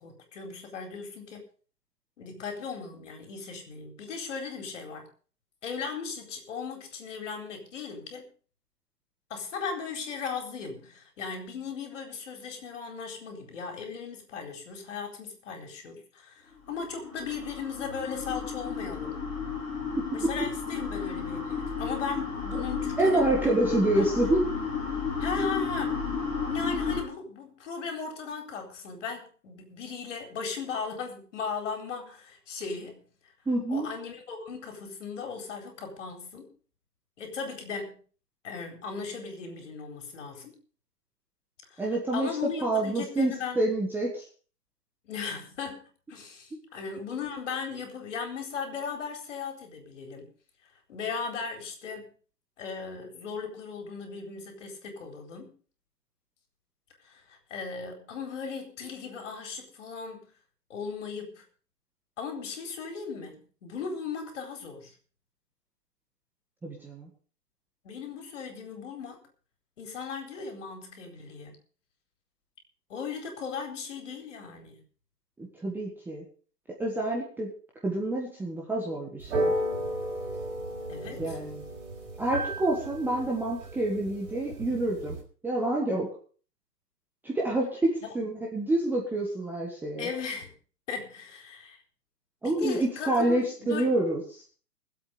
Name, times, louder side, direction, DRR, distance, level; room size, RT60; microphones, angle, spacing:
voice 1, 0.0-1.4 2.2-5.1 5.6-8.3 9.3-19.2 20.1-24.2 25.2-26.0 26.5-33.0 33.7-36.5 37.2-38.0 38.4-40.5 41.7-41.9 42.1-43.6 45.0-50.3 50.9-52.1 52.6-55.5 57.0-60.3 60.7-61.4 62.2-64.9 67.8-69.2 69.8-71.6 72.9-74.8 80.9-81.4 90.0-90.5 90.9-91.8 92.4-93.9, left 5 dB, 50° left, 4 dB, 4.4 m, -37 dB
sound 1, 16.7-27.0, left 5 dB, 15° left, 5.5 m, -32 dB
voice 2, 23.0-24.4 33.5-33.9 41.8-42.3 42.6-44.2 66.6-67.1 75.4-76.2 76.8-77.5 77.8-79.5 81.2-81.6 82.2-85.2 85.4-86.1 87.2-90.1 92.4-94.2, right 2 dB, 5° right, -3 dB, 1.5 m, -27 dB
sound 2, 79.2-85.2, right 1 dB, 45° right, 5.1 m, -34 dB
20.5 x 8.1 x 5.3 m, 0.41 s
hypercardioid pair, 145°, 47 cm